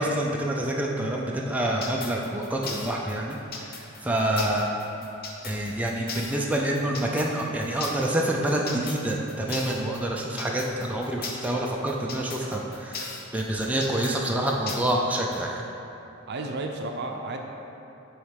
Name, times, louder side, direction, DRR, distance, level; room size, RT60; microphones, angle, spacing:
voice 1, 0.0-3.4 3.8-4.7 5.4-15.6, right 1 dB, 5° right, -2 dB, 0.4 m, -27 dB
sound 1, 1.8-15.4, left 4 dB, 50° left, 0.7 m, -37 dB
voice 2, 16.3-17.4, right 2 dB, 55° right, 3 dB, 0.6 m, -32 dB
7.9 x 3.2 x 5.1 m, 2.9 s
head